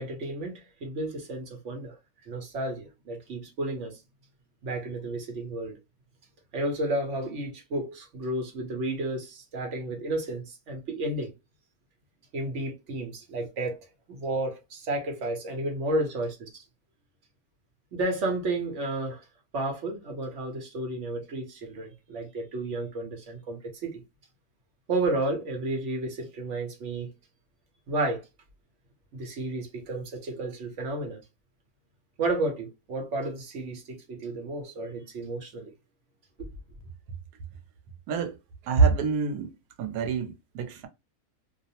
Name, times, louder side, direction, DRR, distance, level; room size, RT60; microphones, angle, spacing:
voice 1, 0.0-1.9 2.3-4.0 4.6-5.8 6.5-11.3 12.3-13.8 14.1-16.5 17.9-19.2 19.5-24.0 24.9-27.1 27.9-28.2 29.1-31.2 32.2-35.7, right 2 dB, 60° right, 1.1 m, -32 dB
voice 2, 38.6-39.5 39.8-40.9, right 5 dB, 85° right, 1.1 m, -25 dB
2.7 x 2.0 x 2.8 m
omnidirectional pair, 1.6 m